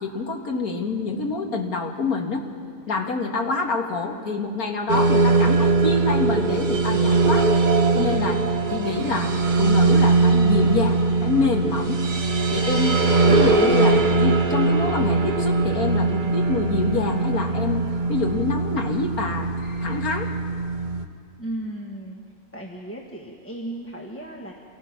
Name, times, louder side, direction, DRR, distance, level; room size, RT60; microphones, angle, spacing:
voice 1, 0.0-2.4 2.9-7.5 7.9-12.0 12.5-20.4, left 3 dB, 65° left, 2 dB, 2.3 m, -26 dB
sound 1, 4.9-21.0, right 3 dB, 35° right, 1.0 m, -21 dB
voice 2, 21.4-22.2 22.5-24.5, right 1 dB, 10° left, -1 dB, 1.2 m, -35 dB
27.5 x 19.0 x 6.0 m, 2.2 s
omnidirectional pair, 1.7 m